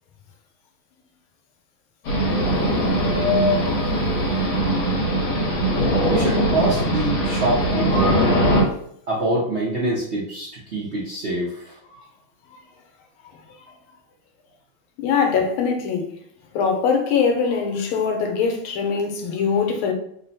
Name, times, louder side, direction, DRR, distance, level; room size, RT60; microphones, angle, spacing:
sound 1, 2.1-8.6, equal, 55° left, 1.6 m, -20 dB
voice 1, 6.1-8.3 9.1-11.8, right 2 dB, 65° right, 0.6 m, -25 dB
voice 2, 15.0-16.1 16.5-19.9, left 6 dB, 85° left, 1.6 m, -22 dB
3.8 x 2.1 x 4.0 m
omnidirectional pair, 2.3 m